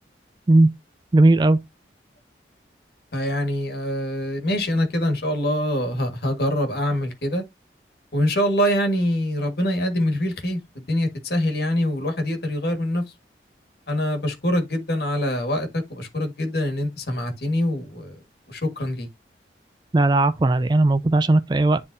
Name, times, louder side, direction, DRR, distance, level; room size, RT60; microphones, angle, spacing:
voice 1, 1.1-1.6 19.9-21.8, right 2 dB, 25° right, 0.4 m, -17 dB
voice 2, 3.1-7.4 8.1-13.0 13.9-18.2 18.5-19.1, left 1 dB, 60° left, 1.7 m, -24 dB
10.0 x 3.5 x 2.7 m
head